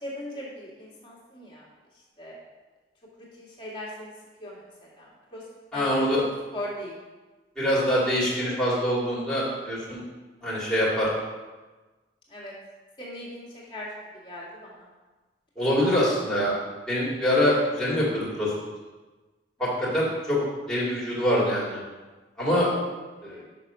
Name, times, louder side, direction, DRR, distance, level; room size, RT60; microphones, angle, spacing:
voice 1, 0.0-1.7 2.2-2.4 3.2-4.1 4.4-6.3 6.5-7.0 12.3-12.5 13.0-13.9 14.1-14.9 19.6-19.7 23.2-23.4, left 1 dB, 25° left, -5 dB, 2.0 m, -39 dB
voice 2, 5.7-6.2 7.6-10.0 10.4-11.1 15.6-16.5 16.9-18.5 19.6-20.4 20.7-21.8 22.4-22.8 23.2-23.4, equal, 5° left, -9 dB, 2.2 m, -24 dB
6.4 x 5.8 x 5.5 m, 1.2 s
head